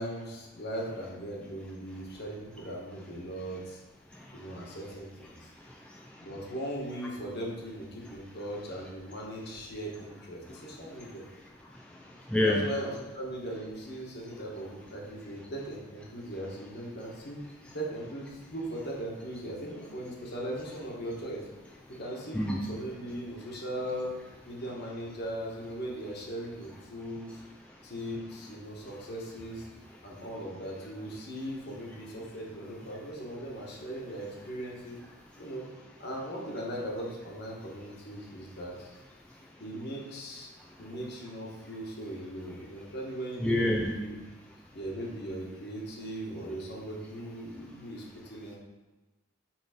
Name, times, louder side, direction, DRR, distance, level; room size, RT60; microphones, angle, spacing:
voice 1, 0.0-3.8 4.3-5.5 6.2-11.2 12.4-17.4 17.7-21.4 21.9-24.1 24.4-27.3 27.8-29.7 30.0-35.0 35.4-35.6 36.0-38.9 39.6-40.5 40.8-44.2 44.7-48.6, right 1 dB, 50° left, -2 dB, 1.4 m, -39 dB
voice 2, 4.1-4.8 5.3-6.3 10.4-11.3 11.7-12.6 21.9-22.0 22.3-22.6 27.3-27.4 27.7-27.8 30.2-30.3 35.3-35.5 39.3-39.5 40.6-40.9 43.4-43.9, left 1 dB, 5° left, -2 dB, 0.3 m, -32 dB
6.0 x 3.6 x 5.0 m, 1.2 s
head